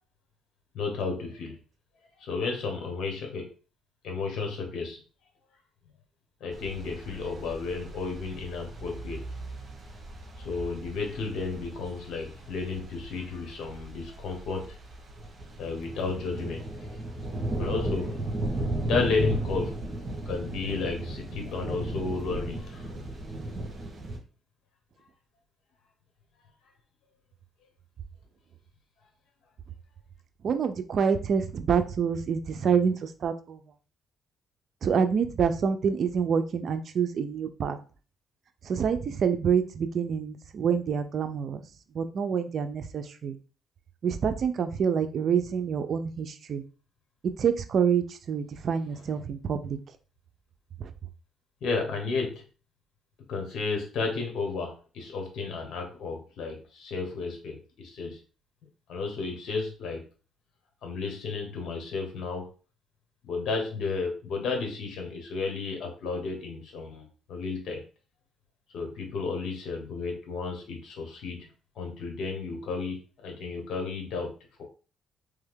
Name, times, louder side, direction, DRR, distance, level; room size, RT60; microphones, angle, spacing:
voice 1, 0.7-1.6 2.2-3.5 4.0-5.0 6.4-9.3 10.4-14.8 15.6-17.0 17.6-18.2 18.8-19.7 20.2-22.9 51.6-52.4 53.3-58.2 58.9-60.1 60.8-62.5 63.2-67.8 68.7-71.5 71.7-74.3, left 4 dB, 70° left, 3 dB, 1.4 m, -32 dB
sound 1, 6.5-24.2, right 1 dB, 40° right, 1.8 m, -36 dB
voice 2, 30.4-33.6 34.8-37.8 38.6-41.6 41.9-43.4 44.0-46.6 47.4-49.8 50.8-50.9, right 7 dB, 60° right, 9 dB, 0.6 m, -27 dB
3.4 x 3.4 x 3.6 m, 0.36 s
cardioid pair, 90°, 0 cm